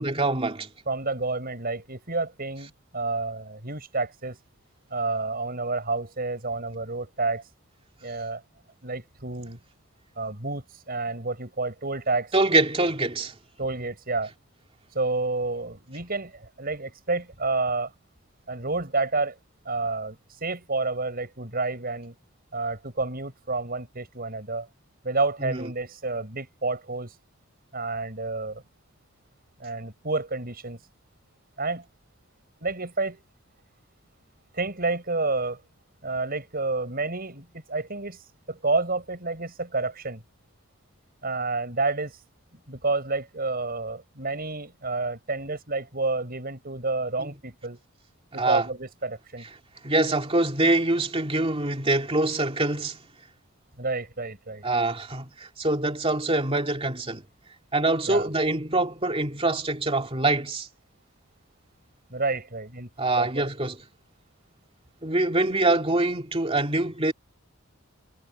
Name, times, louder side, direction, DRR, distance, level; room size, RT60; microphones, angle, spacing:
voice 1, 0.0-0.7 12.3-13.3 25.4-25.6 47.2-47.3 48.4-48.7 49.8-53.0 54.6-57.2 57.7-60.7 63.0-63.8 65.0-67.1, right 2 dB, 25° right, 2.4 m, -24 dB
voice 2, 0.9-4.4 4.9-7.4 8.0-8.4 8.8-9.6 10.2-12.3 13.6-14.3 14.9-17.9 18.5-19.4 19.6-22.1 22.5-24.7 25.0-27.1 27.7-28.6 29.6-30.8 31.6-31.9 32.6-33.2 34.5-35.6 36.0-38.2 38.5-40.2 41.2-42.2 42.7-47.8 48.3-49.4 53.8-54.6 58.1-58.3 62.1-62.9 63.2-63.5, right 3 dB, 45° right, 6.4 m, -29 dB
head